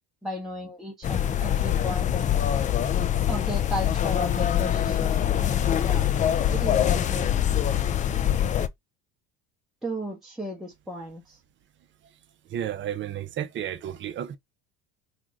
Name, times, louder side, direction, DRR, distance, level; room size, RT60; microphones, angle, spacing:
voice 1, 0.2-2.2 3.3-6.1 6.5-7.3 9.8-11.4, equal, ahead, 0.8 m, -34 dB
sound 1, 1.0-8.7, left 10 dB, 25° left, 0.3 m, -24 dB
voice 2, 12.5-14.4, right 10 dB, 35° right, 0.7 m, -32 dB
3.0 x 2.5 x 3.7 m
supercardioid pair, 110°, 33 cm